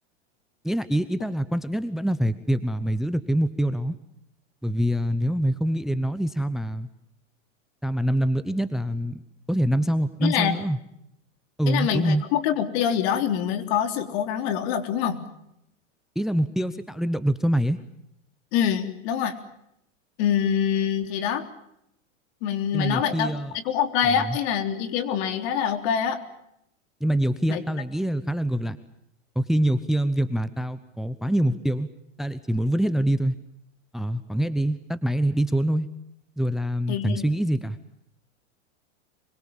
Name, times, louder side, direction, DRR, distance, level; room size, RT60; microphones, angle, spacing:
voice 1, 0.6-3.9 4.6-6.9 7.8-9.2 9.5-10.8 11.6-12.2 16.2-17.8 22.7-23.5 24.0-24.4 27.0-28.8 29.4-31.9 32.2-33.3 33.9-35.9 36.4-37.8, right 1 dB, ahead, 14 dB, 0.9 m, -25 dB
voice 2, 10.2-10.5 11.7-15.2 18.5-19.4 20.2-21.4 22.4-23.3 23.7-26.2 27.5-27.6 36.9-37.2, left 8 dB, 55° left, 8 dB, 3.7 m, -25 dB
26.0 x 23.5 x 7.3 m, 0.80 s
hypercardioid pair, 125°, 38 cm